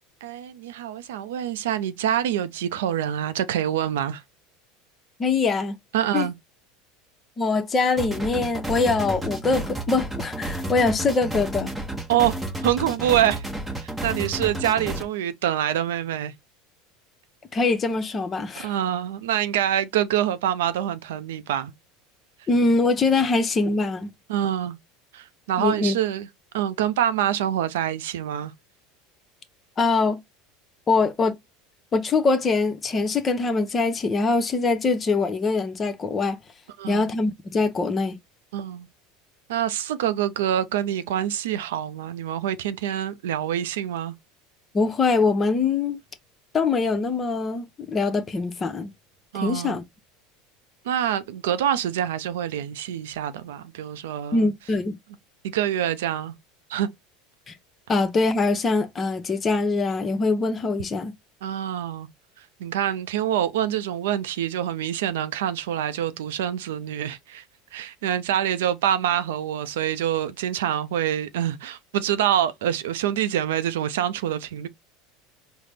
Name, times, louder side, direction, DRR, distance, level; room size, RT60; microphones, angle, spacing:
voice 1, 0.2-4.2 5.9-6.4 12.1-13.4 13.8-16.3 18.6-21.7 24.3-24.8 25.1-26.3 26.5-28.5 36.8-37.1 38.5-38.9 39.5-44.1 49.3-49.8 50.8-54.5 55.4-56.4 56.7-56.9 61.4-62.1 62.4-67.4 67.7-74.7, right 10 dB, 85° right, 0.4 m, -26 dB
voice 2, 5.2-5.8 6.1-6.3 7.4-11.7 17.5-18.7 22.5-24.1 25.6-25.9 29.8-30.2 30.9-31.4 31.9-36.4 36.9-38.2 44.7-46.0 46.5-48.9 49.4-49.8 54.3-55.0 57.5-57.6 57.9-61.1, left 3 dB, 25° left, 0.7 m, -23 dB
sound 1, 8.0-15.0, right 1 dB, 10° right, 0.8 m, -31 dB
4.0 x 2.0 x 3.3 m
supercardioid pair, 105°, 0 cm